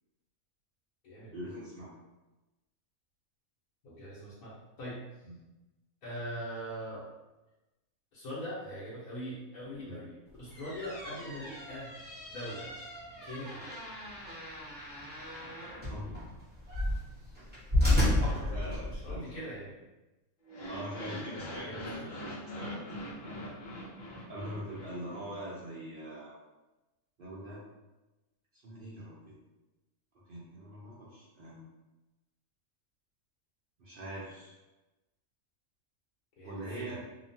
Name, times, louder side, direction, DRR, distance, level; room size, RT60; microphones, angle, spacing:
voice 1, 1.3-1.9 5.2-5.3 9.8-10.0 15.9-16.2 18.2-19.4 20.7-21.7 22.0-22.8 23.2-23.5 24.3-26.3 27.2-27.6 28.6-29.4 30.3-31.7 33.8-34.6 36.4-37.0, right 1 dB, 55° right, -7 dB, 0.6 m, -43 dB
voice 2, 3.8-5.0 6.0-7.0 8.1-11.9 12.3-12.7 13.2-13.7 17.8-18.0 18.3-19.8 21.6-21.9 36.4-37.0, equal, 90° left, -8 dB, 1.3 m, -42 dB
sound 1, 10.3-19.2, left 1 dB, 10° right, 0.6 m, -33 dB
sound 2, 20.5-25.6, equal, 70° left, 0.4 m, -43 dB
2.9 x 2.2 x 2.6 m, 1.0 s
omnidirectional pair, 1.5 m